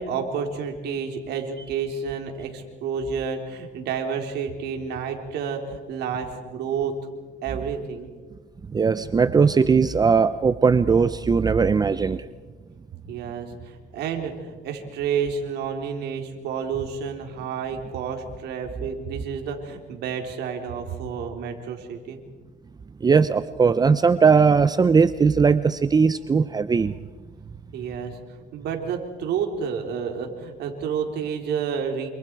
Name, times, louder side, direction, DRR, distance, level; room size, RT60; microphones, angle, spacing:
voice 1, 0.0-7.0 7.4-8.1 13.1-22.2 27.7-28.2 28.5-32.1, right 6 dB, 80° right, 3 dB, 4.0 m, -30 dB
voice 2, 8.7-12.3 23.0-26.9, right 5 dB, 25° right, 13 dB, 0.7 m, -19 dB
28.0 x 28.0 x 4.8 m, 1.3 s
cardioid pair, 110°, 17 cm